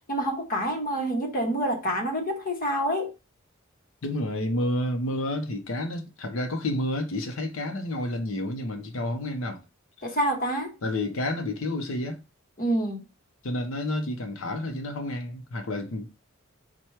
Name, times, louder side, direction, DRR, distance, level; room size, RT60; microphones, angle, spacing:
voice 1, 0.1-3.1 10.0-10.7 12.6-13.0, equal, 40° left, 0.9 m, -27 dB
voice 2, 4.0-9.6 10.8-12.2 13.4-16.2, left 1 dB, 70° left, 0.7 m, -30 dB
4.4 x 2.2 x 4.5 m
head